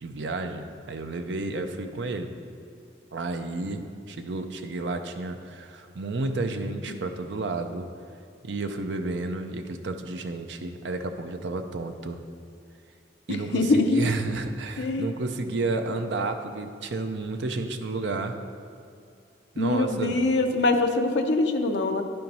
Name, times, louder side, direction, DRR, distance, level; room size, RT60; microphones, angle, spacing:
voice 1, 0.0-2.3 3.1-7.9 8.4-12.2 13.3-18.4 19.5-20.2, right 3 dB, 80° right, 6 dB, 0.6 m, -31 dB
voice 2, 13.3-14.0 14.8-15.1 19.6-22.0, left 2 dB, 75° left, 5 dB, 0.6 m, -23 dB
10.5 x 4.5 x 5.4 m, 2.4 s
head